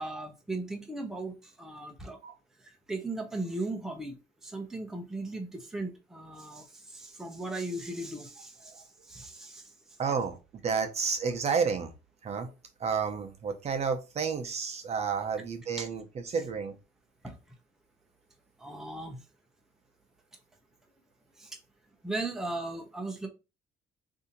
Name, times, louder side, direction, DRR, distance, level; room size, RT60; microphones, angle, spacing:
voice 1, 0.0-2.2 2.9-4.2 4.4-6.6 6.9-8.7 9.1-9.6 15.8-15.9 17.2-17.3 18.6-19.2 21.4-21.5 22.0-23.3, right 2 dB, 5° right, 0.7 m, -37 dB
voice 2, 10.0-11.9 12.2-12.5 12.8-16.8, right 6 dB, 40° right, 0.7 m, -31 dB
2.7 x 2.7 x 3.8 m
cardioid pair, 110°, 17 cm